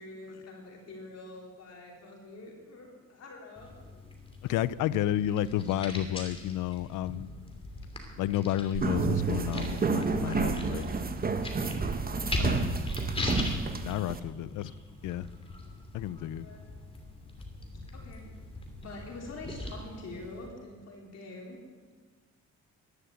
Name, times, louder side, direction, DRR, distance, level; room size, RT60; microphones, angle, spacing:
voice 1, 0.0-3.7 10.4-11.0 11.5-12.1 12.5-13.3 16.3-16.6 17.9-18.2 18.8-21.6, left 2 dB, 55° left, -1 dB, 3.5 m, -46 dB
sound 1, 3.6-20.5, left 1 dB, 20° left, 3.0 m, -40 dB
voice 2, 4.4-7.3 8.2-10.9 12.4-12.7 13.8-14.7 15.0-15.3 15.9-16.5, left 12 dB, 85° left, 19 dB, 0.5 m, -31 dB
sound 2, 8.7-14.2, right 4 dB, 30° right, 1.1 m, -30 dB
11.5 x 11.0 x 8.2 m, 1.5 s
cardioid pair, 90°, 30 cm